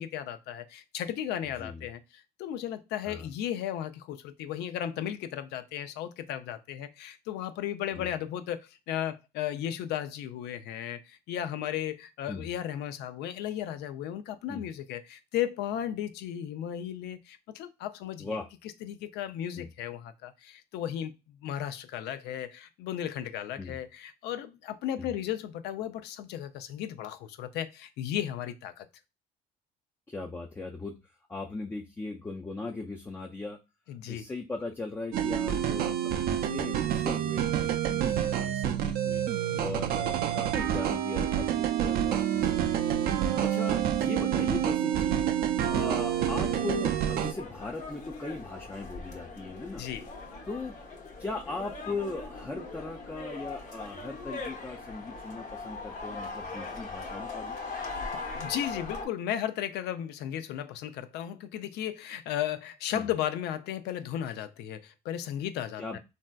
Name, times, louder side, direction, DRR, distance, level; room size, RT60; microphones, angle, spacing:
voice 1, 0.0-18.4 18.8-28.9 33.9-34.3 39.5-39.8 43.3-43.4 49.8-50.1 57.8-57.9 58.1-66.0, left 10 dB, 80° left, 0.4 m, -35 dB
voice 2, 30.1-31.0 31.3-33.6 34.1-39.2 39.6-43.0 43.4-45.3 45.7-49.8 50.5-50.7 51.2-57.6 62.9-63.1 65.8-66.0, left 3 dB, 10° left, 0.4 m, -38 dB
sound 1, 35.1-47.3, right 10 dB, 60° right, 0.4 m, -28 dB
sound 2, 45.6-59.0, left 3 dB, 45° left, 0.9 m, -40 dB
3.2 x 2.6 x 2.2 m
cardioid pair, 110°, 17 cm